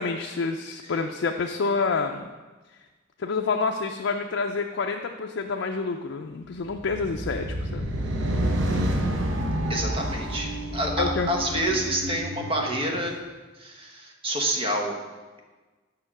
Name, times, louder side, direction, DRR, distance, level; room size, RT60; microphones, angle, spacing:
voice 1, 0.0-2.3 3.2-7.9 11.0-11.3, left 4 dB, 70° left, 3 dB, 0.5 m, -28 dB
sound 1, 6.6-13.1, right 1 dB, 80° right, 0.9 m, -29 dB
voice 2, 9.7-13.1 13.6-15.0, right 1 dB, 30° right, 1 dB, 1.1 m, -28 dB
6.7 x 5.6 x 5.9 m, 1.3 s
head